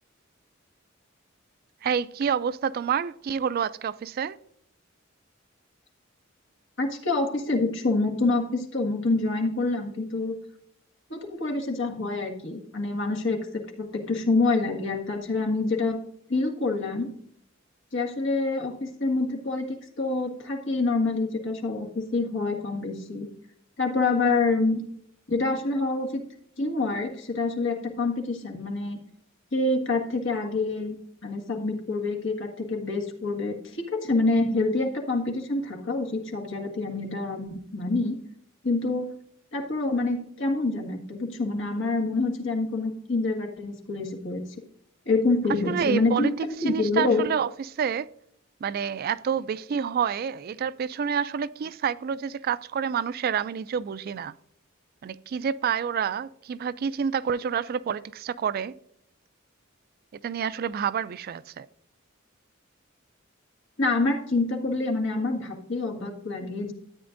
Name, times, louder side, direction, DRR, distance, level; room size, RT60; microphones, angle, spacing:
voice 1, 1.8-4.4 45.7-48.1 48.6-54.3 55.0-58.7 60.2-61.7, right 7 dB, 50° right, 0.3 m, -28 dB
voice 2, 6.8-10.4 11.1-16.0 16.3-17.1 17.9-23.3 23.8-24.8 25.3-26.2 26.6-29.0 29.5-31.0 31.2-38.2 38.6-39.1 39.5-44.4 45.0-47.2 63.8-66.7, left 3 dB, 65° left, 1.7 m, -27 dB
13.5 x 8.7 x 2.6 m
head